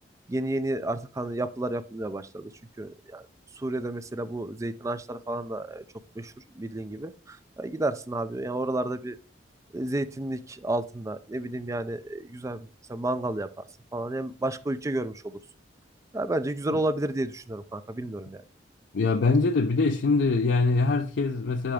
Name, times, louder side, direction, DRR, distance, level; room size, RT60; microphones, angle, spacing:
voice 1, 0.3-2.5 2.8-3.2 3.6-5.8 6.2-9.2 9.7-13.5 13.9-15.4 16.1-18.4, right 1 dB, 20° right, 0.3 m, -31 dB
voice 2, 18.9-21.7, left 3 dB, 85° left, 0.5 m, -23 dB
10.0 x 3.4 x 3.5 m
head